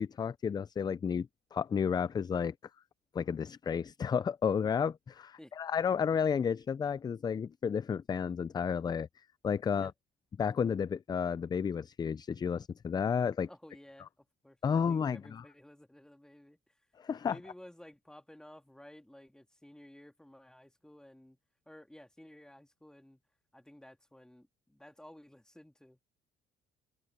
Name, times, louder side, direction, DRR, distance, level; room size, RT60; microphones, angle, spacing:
voice 1, 0.0-2.5 3.1-9.1 9.4-9.9 10.4-13.5 14.6-15.4 17.0-17.4, left 7 dB, 25° left, 0.4 m, -32 dB
voice 2, 13.5-16.8 17.1-21.4 21.7-23.2 23.5-26.0, left 1 dB, 5° left, 1.8 m, -55 dB
cardioid pair, 110°, 17 cm